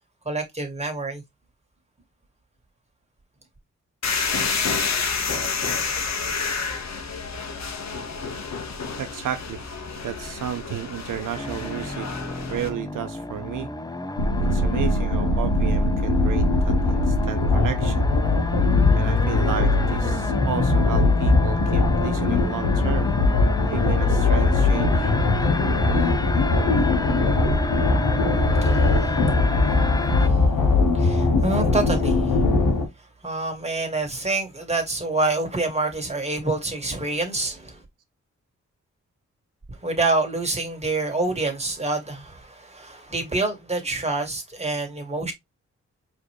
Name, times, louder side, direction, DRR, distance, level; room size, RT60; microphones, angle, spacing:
voice 1, 0.3-1.2 28.3-32.5 33.2-37.8 39.7-45.3, right 2 dB, 20° right, 2.1 m, -27 dB
sound 1, 4.0-12.7, left 5 dB, 60° left, 1.1 m, -29 dB
voice 2, 9.0-9.7 10.0-12.1 12.5-13.7 14.4-18.1 18.9-23.1 23.7-25.1, right 10 dB, 85° right, 0.7 m, -32 dB
sound 2, 11.4-30.3, left 2 dB, 15° left, 0.6 m, -31 dB
sound 3, 14.2-32.9, left 3 dB, 85° left, 1.4 m, -21 dB
4.7 x 3.3 x 3.0 m
cardioid pair, 55°, 31 cm